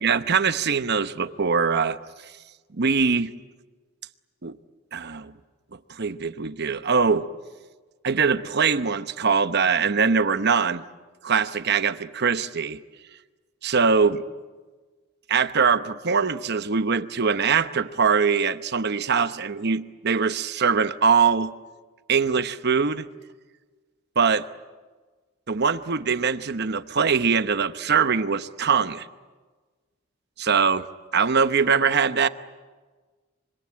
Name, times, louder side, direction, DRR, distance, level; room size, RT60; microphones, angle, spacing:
voice 1, 0.0-2.0 2.7-3.3 4.4-4.6 4.9-5.3 5.9-7.3 8.0-10.8 11.2-12.8 13.6-14.2 15.3-21.5 22.1-23.1 24.2-24.5 25.5-29.1 30.4-30.9 31.1-32.3, right 5 dB, 55° right, 12 dB, 0.9 m, -22 dB
26.0 x 25.0 x 8.7 m, 1.3 s
head